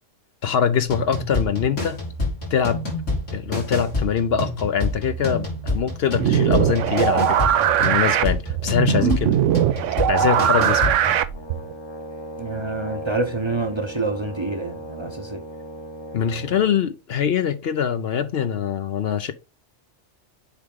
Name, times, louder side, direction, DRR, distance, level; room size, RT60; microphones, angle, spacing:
voice 1, 0.4-2.0 2.5-2.9 3.3-7.5 7.8-9.4 10.1-11.0 16.1-19.3, left 7 dB, 60° left, 0.8 m, -23 dB
sound 1, 0.9-11.2, left 2 dB, 85° left, 3.2 m, -28 dB
sound 2, 6.2-11.7, right 10 dB, 85° right, 1.0 m, -20 dB
Brass instrument, 11.3-16.8, right 1 dB, 25° left, 0.8 m, -37 dB
voice 2, 12.4-15.4, right 3 dB, 25° right, 0.7 m, -27 dB
7.1 x 4.8 x 3.7 m
omnidirectional pair, 1.2 m